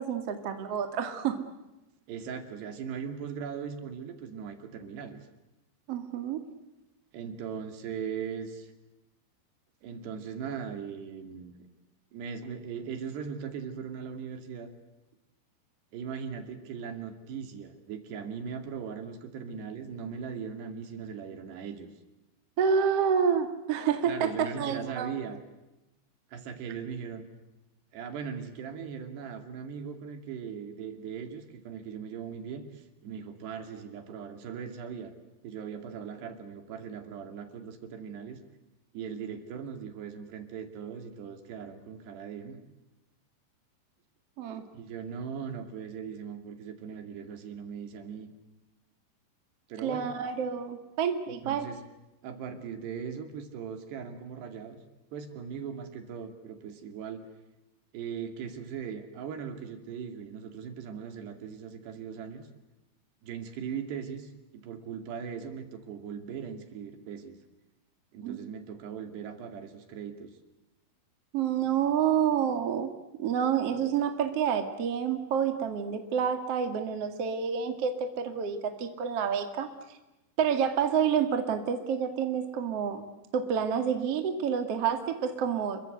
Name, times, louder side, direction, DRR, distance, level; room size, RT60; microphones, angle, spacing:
voice 1, 0.0-1.4 5.9-6.4 22.6-25.1 44.4-44.7 49.8-51.7 68.2-68.4 71.3-72.9 73.2-79.7 80.4-83.1 83.3-85.8, right 7 dB, 45° right, 7 dB, 2.2 m, -28 dB
voice 2, 2.1-5.2 7.1-8.7 9.8-11.5 12.1-14.7 15.9-21.9 24.1-25.4 26.3-27.3 27.9-35.1 35.4-38.4 38.9-42.6 44.7-48.3 49.7-50.1 51.4-51.8 52.2-54.8 55.1-57.2 57.9-62.5 63.2-64.3 64.6-67.4 68.1-70.3, right 7 dB, 65° right, 7 dB, 4.4 m, -39 dB
29.0 x 23.0 x 8.0 m, 0.98 s
omnidirectional pair, 5.5 m